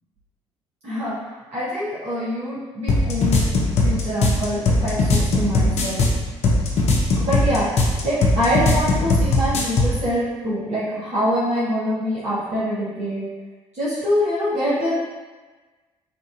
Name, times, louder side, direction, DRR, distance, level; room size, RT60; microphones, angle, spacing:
voice 1, 0.8-1.1 1.5-3.4 3.8-6.0 7.2-13.2 13.7-14.9, equal, 50° right, -11 dB, 1.3 m, -24 dB
sound 1, 2.9-10.0, left 2 dB, 45° left, 0.6 m, -19 dB
4.2 x 2.5 x 2.5 m, 1.3 s
figure-of-eight pair, 45°, 15 cm